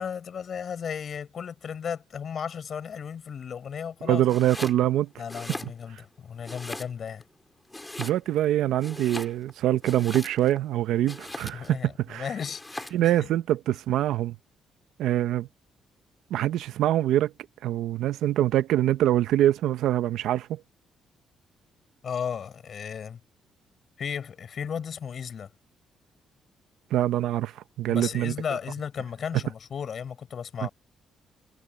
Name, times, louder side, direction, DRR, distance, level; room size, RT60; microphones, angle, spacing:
voice 1, 0.0-4.2 5.2-7.2 11.5-13.3 22.0-23.2 24.0-25.5 27.9-30.7, left 7 dB, 55° left, 6.0 m, -35 dB
voice 2, 4.0-5.1 8.0-11.8 12.1-12.2 12.9-14.4 15.0-15.5 16.3-17.3 17.6-20.6 26.9-27.5 27.8-28.3 30.6-30.7, right 13 dB, 85° right, 0.7 m, -24 dB
Domestic sounds home sounds, 4.2-4.8 5.2-6.1 6.4-7.2 7.7-8.5 8.8-10.6 11.1-11.8 12.4-13.1, left 2 dB, 15° left, 4.5 m, -39 dB
cardioid pair, 90°, 0 cm